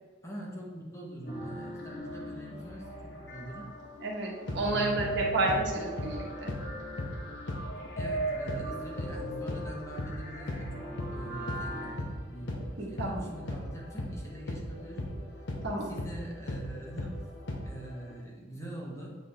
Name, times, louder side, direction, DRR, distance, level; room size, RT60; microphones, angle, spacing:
voice 1, 0.2-3.7 4.6-5.6 8.0-12.6 12.9-15.1 15.8-17.2 17.6-19.1, right 1 dB, 15° left, -3 dB, 1.2 m, -43 dB
sound 1, 1.3-11.9, right 2 dB, 70° left, 1.7 m, -39 dB
voice 2, 4.0-6.5 12.8-13.3 15.6-15.9, right 2 dB, 70° right, -3 dB, 1.4 m, -31 dB
sound 2, 4.4-12.2 12.5-18.2, left 1 dB, 90° left, 0.8 m, -38 dB
8.5 x 3.8 x 3.4 m, 1.4 s
head